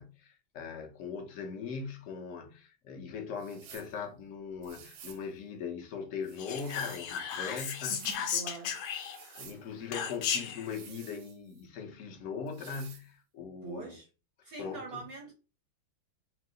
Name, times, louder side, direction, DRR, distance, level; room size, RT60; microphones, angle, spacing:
voice 1, 0.0-8.0 9.3-14.0 14.6-15.0, left 6 dB, 60° left, 0.8 m, -40 dB
sound 1, 3.4-3.9 4.6-5.3 6.2-7.1 7.6-8.2 9.0-9.6 10.6-11.6 12.5-13.1, right 9 dB, 90° right, 1.5 m, -52 dB
Whispering, 6.4-9.4 9.9-10.7, left 7 dB, 80° left, 1.5 m, -34 dB
voice 2, 7.9-8.9 13.6-14.1 14.4-15.3, right 4 dB, 70° right, 0.9 m, -44 dB
4.7 x 2.0 x 3.8 m
omnidirectional pair, 2.2 m